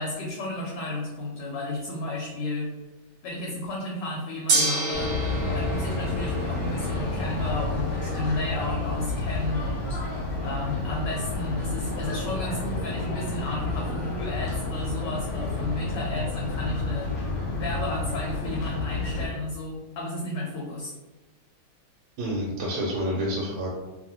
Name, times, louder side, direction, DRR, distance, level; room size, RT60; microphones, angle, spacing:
voice 1, 0.0-2.7 3.2-5.2 5.5-10.0 10.4-20.9, left 2 dB, 75° left, -2 dB, 1.1 m, -33 dB
Gong, 4.5-14.7, right 2 dB, 55° right, 1.2 m, -34 dB
sound 1, 4.9-19.3, left 3 dB, 50° left, 1.0 m, -30 dB
voice 2, 22.2-23.7, equal, 85° right, -4 dB, 1.5 m, -28 dB
3.0 x 2.6 x 2.7 m, 1.1 s
omnidirectional pair, 2.4 m